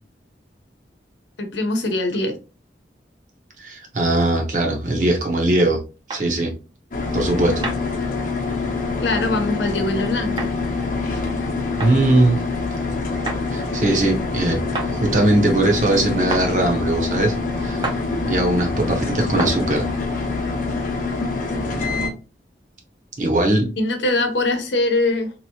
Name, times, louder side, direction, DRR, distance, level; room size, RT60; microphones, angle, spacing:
voice 1, 1.4-2.4 9.0-10.5 23.8-25.3, left 2 dB, 85° left, 6 dB, 0.8 m, -22 dB
voice 2, 3.6-5.8 6.1-6.5 7.1-7.7 11.8-12.4 13.5-14.6 14.8-17.3 17.6-17.9 18.3-19.9 23.2-23.7, right 1 dB, 45° right, 1 dB, 0.9 m, -20 dB
sound 1, 6.1-6.3 7.6-7.8 9.1-9.3 10.4-10.5 11.8-12.0 13.3-13.4 14.8-14.9 16.3-16.5 17.8-18.0 19.4-19.6, right 3 dB, 25° right, 0.5 m, -28 dB
sound 2, 6.9-22.1, left 3 dB, 50° left, 0.8 m, -25 dB
3.0 x 2.8 x 2.8 m, 0.31 s
head